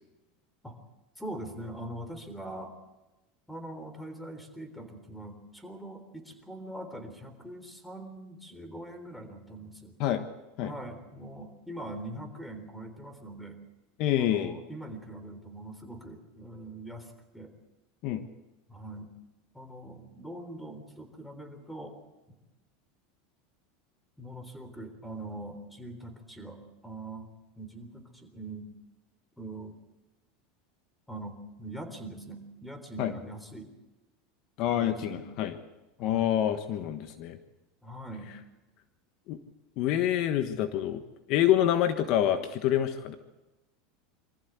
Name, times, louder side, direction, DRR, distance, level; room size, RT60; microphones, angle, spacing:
voice 1, 1.2-2.8 3.5-10.0 10.6-13.6 14.1-17.5 18.7-19.1 19.5-22.0 22.3-22.4 24.2-27.3 27.6-28.7 29.4-29.8 31.1-33.7 34.6-35.4 36.0-36.3 37.8-38.3, right 1 dB, 5° left, 8 dB, 3.7 m, -42 dB
voice 2, 14.0-14.6 18.0-18.2 33.0-33.1 34.6-35.6 36.0-37.4 39.3-39.4 39.8-41.0 41.3-43.2, left 11 dB, 55° left, 9 dB, 1.3 m, -27 dB
24.0 x 14.5 x 8.2 m, 1.1 s
supercardioid pair, 120°, 0 cm